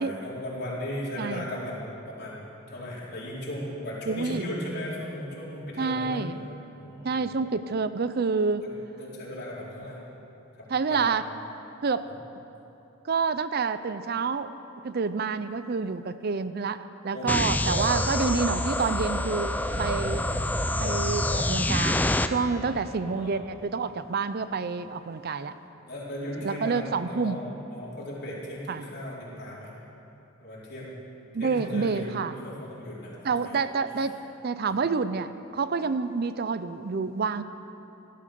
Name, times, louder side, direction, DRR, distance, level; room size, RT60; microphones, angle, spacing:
voice 1, 0.0-6.3 6.7-7.3 8.6-8.7 9.0-10.0 10.5-11.0 17.1-17.4 17.8-17.9 22.5-23.3 25.9-29.7 30.4-30.9 31.4-32.1 32.4-33.6 33.9-34.0, left 1 dB, 55° left, -6 dB, 4.3 m, -37 dB
voice 2, 4.1-4.4 5.8-6.5 7.0-8.7 10.7-11.2 11.8-12.0 13.0-14.6 14.8-20.3 20.8-25.6 26.4-27.4 28.7-28.8 31.3-32.3 33.2-34.2 34.4-37.4, right 4 dB, 50° right, 12 dB, 0.5 m, -28 dB
sound 1, 17.3-22.3, left 1 dB, 10° left, 0.5 m, -27 dB
sound 2, 19.2-24.0, equal, 85° right, 4.4 m, -39 dB
16.5 x 12.5 x 6.8 m, 3.0 s
head